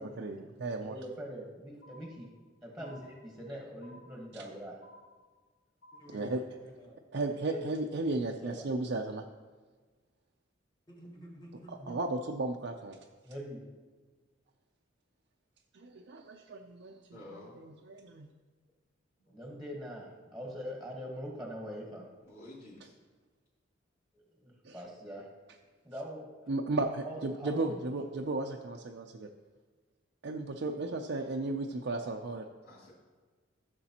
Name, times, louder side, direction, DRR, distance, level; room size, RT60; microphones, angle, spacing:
voice 1, 0.0-1.0 4.3-4.4 6.1-6.4 7.1-9.2 11.7-13.0 15.7-18.3 24.6-24.8 26.5-29.3 30.2-32.5, right 2 dB, 60° right, 1 dB, 0.5 m, -35 dB
voice 2, 0.8-2.3 2.6-4.8 7.5-7.6 8.2-8.7 13.2-13.6 19.3-22.1 24.1-25.3 25.8-26.3 27.0-27.8, equal, ahead, -1 dB, 1.2 m, -43 dB
sound 1, 1.8-2.5 2.8-3.5 3.8-4.5 4.8-5.5 5.8-6.5, left 1 dB, 70° left, 2.2 m, -57 dB
voice 3, 5.9-7.0 10.9-12.0, equal, 20° left, -1 dB, 1.3 m, -50 dB
voice 4, 17.1-17.5 19.2-19.3 22.2-22.9 32.7-32.9, left 1 dB, 55° left, -11 dB, 2.8 m, -50 dB
14.0 x 6.7 x 2.9 m, 1.4 s
head